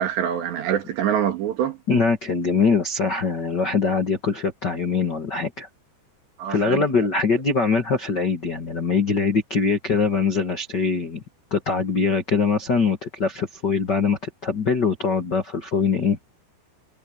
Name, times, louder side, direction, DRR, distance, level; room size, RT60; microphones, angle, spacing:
voice 1, 0.0-1.8 6.4-6.8, right 9 dB, 75° right, 4.4 m, -25 dB
voice 2, 1.9-5.7 6.5-11.2 11.5-16.2, left 5 dB, 50° left, 1.2 m, -22 dB
omnidirectional pair, 5.1 m